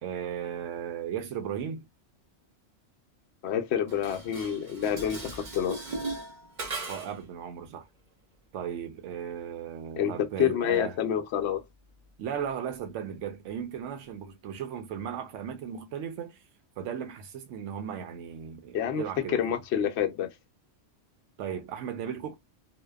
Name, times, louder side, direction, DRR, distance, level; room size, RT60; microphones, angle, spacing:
voice 1, 0.0-1.9 6.9-7.9 8.5-11.0 12.2-16.4 16.8-19.6 21.4-22.3, right 8 dB, 90° right, 0.9 m, -36 dB
voice 2, 3.4-5.8 10.0-10.1 10.4-11.6 18.7-19.0 19.3-20.3, left 9 dB, 70° left, 0.8 m, -28 dB
Dishes pots and pans, 3.9-7.3, right 3 dB, 45° right, 0.8 m, -38 dB
2.7 x 2.1 x 2.2 m
omnidirectional pair, 1.2 m